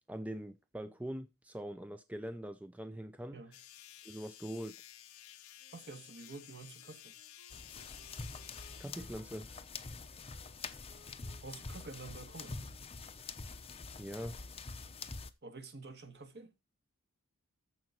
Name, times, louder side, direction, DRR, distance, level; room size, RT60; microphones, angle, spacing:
voice 1, 0.1-3.4 4.0-4.7 8.8-9.5 14.0-14.4, equal, 5° right, 0.6 m, -42 dB
sound 1, 3.5-8.9, left 13 dB, 65° left, 0.9 m, -54 dB
Wind instrument woodwind instrument, 5.6-15.1, right 1 dB, 65° right, 3.6 m, -68 dB
voice 2, 5.7-7.1 11.4-12.6 15.4-16.5, right 3 dB, 50° right, 1.8 m, -49 dB
sound 2, 7.5-15.3, left 4 dB, 25° left, 0.8 m, -46 dB
14.0 x 5.2 x 4.4 m
head